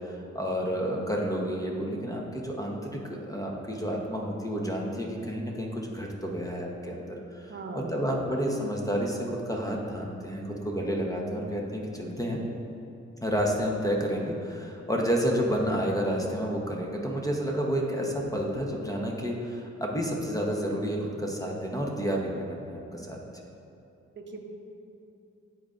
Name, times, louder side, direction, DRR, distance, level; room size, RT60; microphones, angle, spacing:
voice 1, 0.0-12.4 13.2-23.2, equal, 10° left, -1 dB, 1.0 m, -30 dB
voice 2, 7.5-8.0 24.2-24.4, right 3 dB, 35° right, 2 dB, 0.9 m, -39 dB
10.5 x 3.8 x 2.5 m, 2.9 s
supercardioid pair, 50°, 31 cm